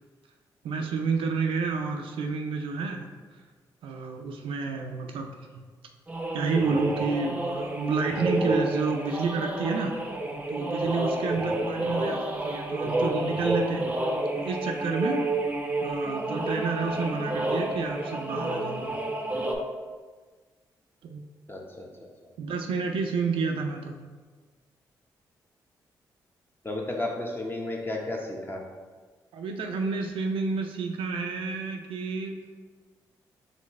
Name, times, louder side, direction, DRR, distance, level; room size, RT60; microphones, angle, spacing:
voice 1, 0.6-3.1 3.8-5.3 5.6-5.7 6.3-10.0 10.5-13.8 14.4-15.2 15.8-19.0 21.0-21.2 22.4-23.9 29.3-32.4, right 4 dB, 75° right, 4 dB, 0.4 m, -30 dB
sound 1, 6.1-19.6, right 1 dB, 15° right, 0.6 m, -29 dB
voice 2, 11.7-12.1 21.5-21.8 26.6-28.6, left 2 dB, 25° left, 0 dB, 0.9 m, -33 dB
4.2 x 3.2 x 3.1 m, 1.4 s
supercardioid pair, 45°, 9 cm